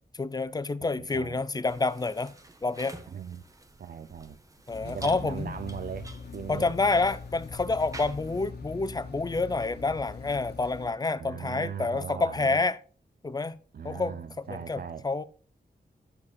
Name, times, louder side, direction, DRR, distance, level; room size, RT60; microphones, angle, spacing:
voice 1, 0.1-2.3 2.6-3.0 4.7-5.5 6.5-12.8 13.2-13.6 13.8-14.2 14.5-15.2, left 3 dB, 20° left, 0.4 m, -28 dB
voice 2, 1.0-1.4 3.1-3.4 3.8-4.4 4.8-6.7 11.2-12.6 13.7-15.1, right 8 dB, 55° right, 0.4 m, -39 dB
sound 1, 1.6-8.5, right 2 dB, 20° right, 0.8 m, -49 dB
sound 2, 4.7-10.9, left 4 dB, 65° left, 1.2 m, -42 dB
9.8 x 6.6 x 2.3 m
wide cardioid pair, 130°, 18 cm